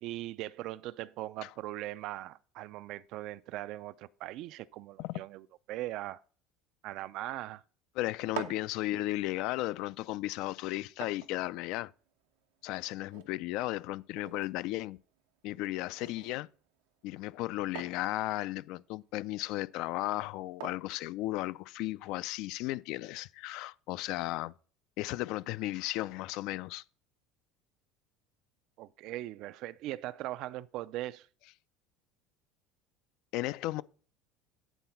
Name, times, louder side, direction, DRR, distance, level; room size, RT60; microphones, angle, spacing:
voice 1, 0.0-6.2 6.8-7.6 28.8-31.3, right 15 dB, 50° right, 0.3 m, -40 dB
voice 2, 8.0-11.9 12.6-15.0 15.4-16.5 17.0-24.5 25.0-26.8 33.3-33.8, left 17 dB, 60° left, 0.3 m, -35 dB
sound 1, 8.1-22.0, right 12 dB, 90° right, 0.8 m, -50 dB
9.2 x 3.9 x 5.7 m
cardioid pair, 160°, 0 cm